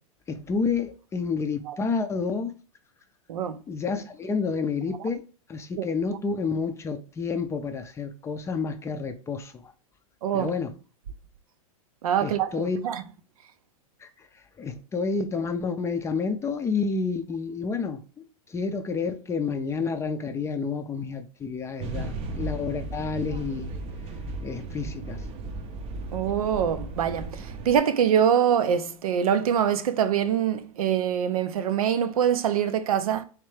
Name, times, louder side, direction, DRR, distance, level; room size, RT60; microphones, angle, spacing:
voice 1, 0.3-2.5 3.7-5.2 5.5-9.7 10.3-10.7 12.2-12.8 14.0-23.7 24.4-25.2, left 5 dB, 15° left, 0.4 m, -29 dB
voice 2, 10.2-10.5 12.0-13.0 26.1-33.2, right 8 dB, 80° right, 0.5 m, -24 dB
sound 1, 21.8-27.8, right 2 dB, 30° right, 0.6 m, -35 dB
3.4 x 3.2 x 3.2 m
hypercardioid pair, 120°, 18 cm